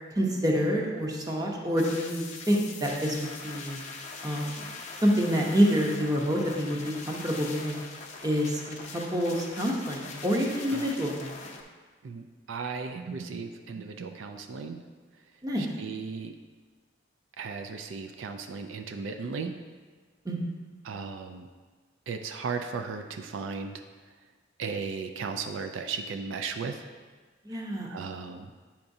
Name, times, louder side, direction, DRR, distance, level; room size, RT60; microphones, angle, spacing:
voice 1, 0.2-3.8 4.2-4.6 5.0-7.8 8.2-11.3 15.4-15.7 20.2-20.5 27.4-27.9, equal, 20° right, -1 dB, 0.8 m, -27 dB
sound 1, 1.8-11.6, left 4 dB, 35° left, 0.6 m, -42 dB
voice 2, 12.0-14.8 15.6-16.3 17.4-19.6 20.8-21.5 22.1-23.8 24.6-26.9 27.6-28.5, right 5 dB, 75° right, 6 dB, 0.4 m, -36 dB
8.5 x 5.8 x 2.7 m, 1.5 s
head